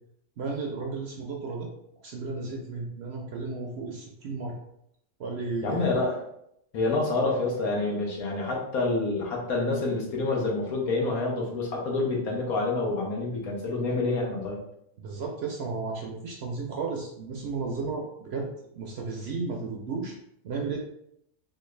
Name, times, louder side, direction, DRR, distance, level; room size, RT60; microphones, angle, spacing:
voice 1, 0.4-1.7 2.0-4.6 5.2-5.9 15.0-18.5 18.7-20.1 20.4-20.8, right 4 dB, 65° right, 0 dB, 0.6 m, -33 dB
voice 2, 5.6-6.2 6.7-14.6, left 3 dB, 85° left, -1 dB, 1.4 m, -27 dB
3.9 x 2.3 x 3.1 m, 0.76 s
omnidirectional pair, 1.5 m